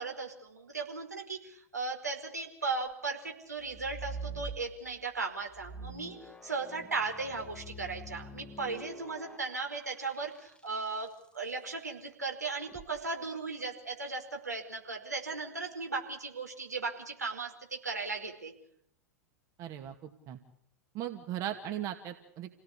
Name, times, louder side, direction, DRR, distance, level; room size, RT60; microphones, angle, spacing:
voice 1, 0.0-18.5, right 4 dB, 80° right, 2 dB, 5.0 m, -37 dB
sound 1, 3.6-5.0 5.5-11.0 12.5-12.9, right 2 dB, 10° left, 1.7 m, -45 dB
voice 2, 19.6-20.4 20.9-22.6, right 11 dB, 40° right, 6 dB, 2.3 m, -38 dB
28.5 x 17.5 x 8.5 m, 0.69 s
figure-of-eight pair, 90°, 9 cm